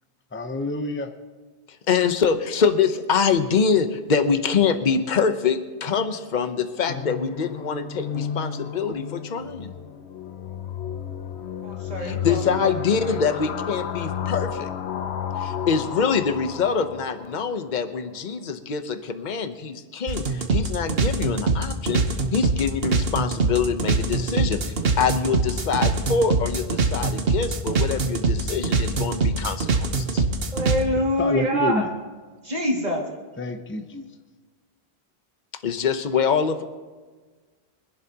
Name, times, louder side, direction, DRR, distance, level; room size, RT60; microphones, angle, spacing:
voice 1, 0.3-1.1 31.2-31.9 33.4-34.0, left 2 dB, 15° left, 6 dB, 0.8 m, -27 dB
voice 2, 1.9-9.7 12.0-14.7 15.4-22.1 22.3-30.2 35.6-36.6, left 6 dB, 50° left, 8 dB, 1.0 m, -24 dB
sound 1, 6.9-17.7, left 8 dB, 90° left, 1.1 m, -32 dB
voice 3, 11.6-12.7 13.0-13.2 30.5-31.9 32.5-33.1, equal, 40° right, -1 dB, 2.4 m, -26 dB
sound 2, 20.1-30.8, right 3 dB, 65° right, 1.3 m, -23 dB
24.5 x 11.5 x 2.9 m, 1.4 s
omnidirectional pair, 1.1 m